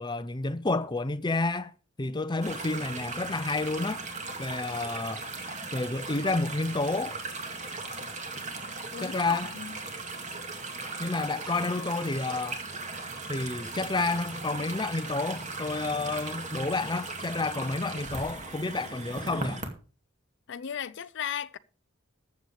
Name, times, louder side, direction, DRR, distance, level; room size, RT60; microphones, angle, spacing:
voice 1, 0.0-1.7 2.0-4.0 4.4-5.3 5.7-7.2 9.0-9.5 11.0-12.6 13.3-19.6, left 3 dB, 20° left, 0.7 m, -30 dB
sound 1, 2.4-19.7, right 3 dB, 35° right, 2.3 m, -38 dB
voice 2, 8.9-9.8 20.5-21.6, left 8 dB, 60° left, 0.5 m, -36 dB
14.0 x 8.0 x 4.8 m
head